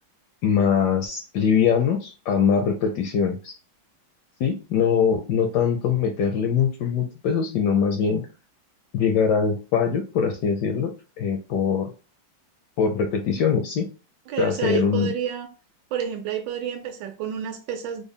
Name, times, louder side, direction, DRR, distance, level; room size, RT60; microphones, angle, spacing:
voice 1, 0.4-3.5 4.4-8.2 8.9-11.9 12.8-13.9 14.4-15.1, left 7 dB, 75° left, 1.0 m, -22 dB
voice 2, 14.3-15.5 15.9-18.0, right 8 dB, 75° right, 1.1 m, -29 dB
3.8 x 2.0 x 3.5 m
omnidirectional pair, 2.2 m